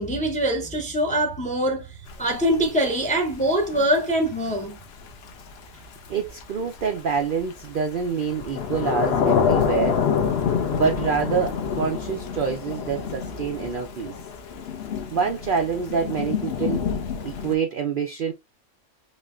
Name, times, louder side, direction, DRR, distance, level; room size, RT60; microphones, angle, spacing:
voice 1, 0.0-1.9 2.2-4.8, right 1 dB, 10° left, 0.5 m, -23 dB
Thunder / Rain, 2.1-17.5, left 6 dB, 55° left, 0.8 m, -27 dB
voice 2, 6.1-10.0 10.7-14.1 15.1-16.8 17.2-18.3, right 6 dB, 70° right, 0.5 m, -26 dB
4.2 x 3.0 x 2.4 m
omnidirectional pair, 1.5 m